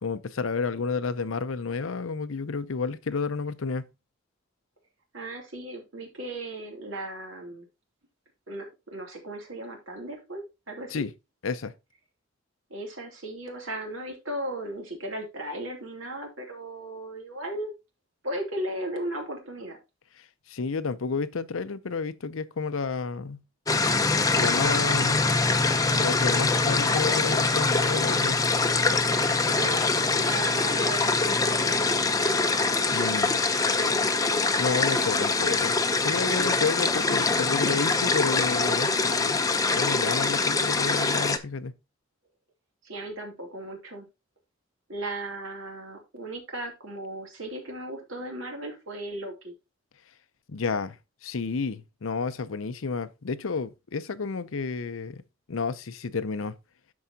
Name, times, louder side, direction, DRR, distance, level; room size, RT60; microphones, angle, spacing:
voice 1, 0.0-3.9 10.9-11.1 11.4-11.7 20.5-23.4 24.3-25.3 25.9-28.4 32.9-33.4 34.4-35.7 36.0-39.4 39.7-41.7 50.5-51.0 51.2-55.2 55.5-56.5, left 4 dB, 80° left, 0.6 m, -31 dB
voice 2, 5.1-7.7 8.5-11.0 12.7-17.7 18.2-19.8 29.4-32.0 33.6-33.9 42.8-44.1 44.9-49.5, right 1 dB, 75° right, 2.7 m, -36 dB
sound 1, 23.7-41.4, left 3 dB, 15° left, 0.6 m, -24 dB
12.5 x 4.7 x 2.8 m
head